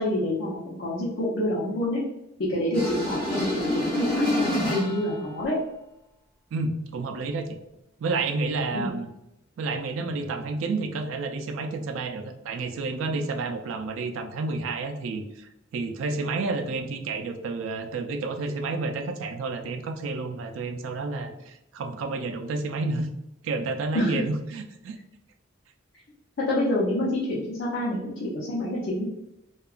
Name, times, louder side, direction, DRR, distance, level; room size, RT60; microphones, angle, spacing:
voice 1, 0.0-2.0 2.4-5.6 8.7-8.9 23.9-24.2 26.4-29.0, left 1 dB, 65° left, -7 dB, 0.7 m, -27 dB
sound 1, 2.7-5.2, left 1 dB, 5° left, 1.2 m, -27 dB
voice 2, 6.5-7.6 8.0-9.1 9.6-23.1 23.4-25.0, right 3 dB, 80° right, 6 dB, 0.4 m, -30 dB
2.8 x 2.3 x 2.4 m, 0.88 s
head